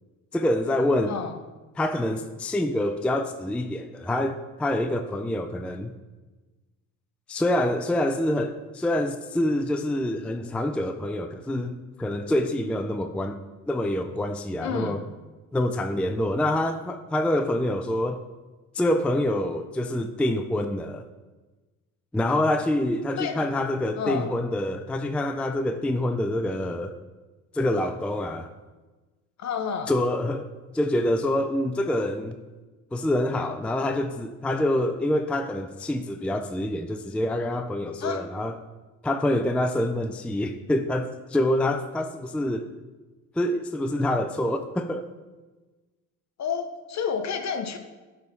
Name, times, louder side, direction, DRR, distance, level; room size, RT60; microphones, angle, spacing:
voice 1, 0.3-1.2 1.8-5.9 7.3-13.4 13.7-15.0 15.5-18.2 18.7-21.0 22.1-26.9 27.5-28.5 29.9-32.4 32.9-38.5 39.0-42.7 43.4-45.1, left 1 dB, 5° left, 7 dB, 0.4 m, -26 dB
voice 2, 14.6-15.0 23.2-23.5 24.0-24.3 29.4-29.9 38.0-38.3 46.4-47.8, left 6 dB, 50° left, 7 dB, 1.0 m, -30 dB
9.5 x 3.6 x 4.0 m, 1.2 s
supercardioid pair, 75°, 36 cm